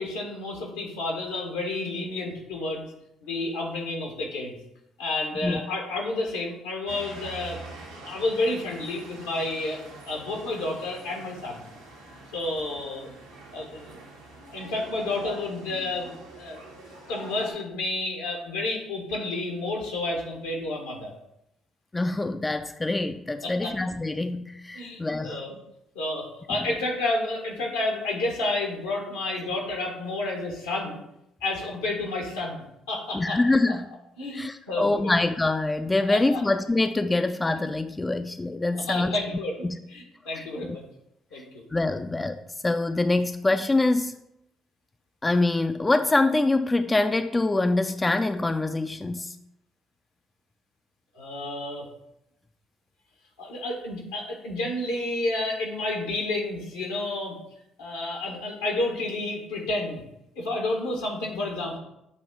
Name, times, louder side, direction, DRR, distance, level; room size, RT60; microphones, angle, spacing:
voice 1, 0.0-2.8 3.2-4.6 5.0-7.6 8.1-11.7 12.3-13.1 13.5-13.8 14.5-16.7 17.1-21.1 23.4-23.7 24.7-25.6 25.9-31.0 31.4-33.4 34.2-35.1 36.1-36.4 37.6-37.7 38.7-40.8 41.3-41.4 51.1-51.9 53.4-57.4 57.8-60.0 60.3-61.8, left 2 dB, 80° left, 0 dB, 1.4 m, -30 dB
sound 1, 6.9-17.5, right 2 dB, 90° right, 1.2 m, -45 dB
voice 2, 21.9-25.4 33.1-33.9 34.3-39.2 39.6-39.8 40.3-40.8 41.7-44.2 45.2-49.4, left 2 dB, 20° left, 9 dB, 0.3 m, -25 dB
7.1 x 2.8 x 5.1 m, 0.82 s
hypercardioid pair, 50°, 0 cm